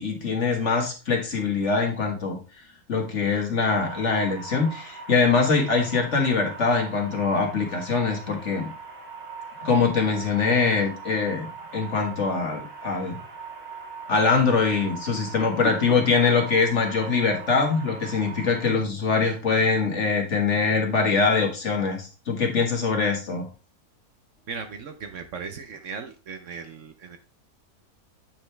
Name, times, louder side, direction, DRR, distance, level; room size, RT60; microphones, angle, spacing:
voice 1, 0.0-2.4 2.9-8.7 9.6-11.5 11.7-13.2 14.1-23.5, left 4 dB, 50° left, 2 dB, 1.8 m, -23 dB
sound 1, 3.7-18.7, right 5 dB, 40° right, 1.6 m, -40 dB
voice 2, 24.5-27.2, right 5 dB, 60° right, 7 dB, 1.0 m, -37 dB
8.8 x 5.0 x 3.3 m, 0.32 s
omnidirectional pair, 1.6 m